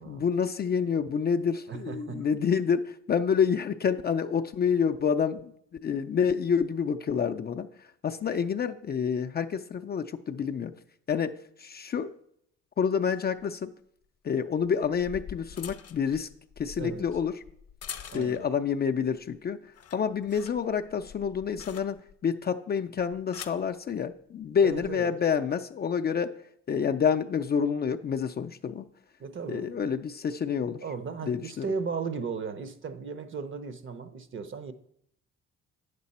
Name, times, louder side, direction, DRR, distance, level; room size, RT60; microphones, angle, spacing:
voice 1, 0.1-5.5 5.8-7.7 8.0-10.7 11.1-12.1 12.8-13.7 14.2-16.3 16.6-17.4 18.1-19.7 19.9-26.3 26.7-28.9 29.5-30.8 31.2-31.7, left 7 dB, 35° left, 0.4 m, -28 dB
voice 2, 1.7-2.3 16.8-17.1 18.1-18.4 24.6-25.1 29.2-29.7 30.8-34.7, right 5 dB, 40° right, 0.7 m, -36 dB
sound 1, 13.4-13.5 14.6-18.6 19.0-19.4 19.7-22.2 23.0-23.7 24.6-24.9, left 8 dB, 55° left, 0.7 m, -45 dB
9.0 x 6.7 x 4.2 m
cardioid pair, 90°, 30 cm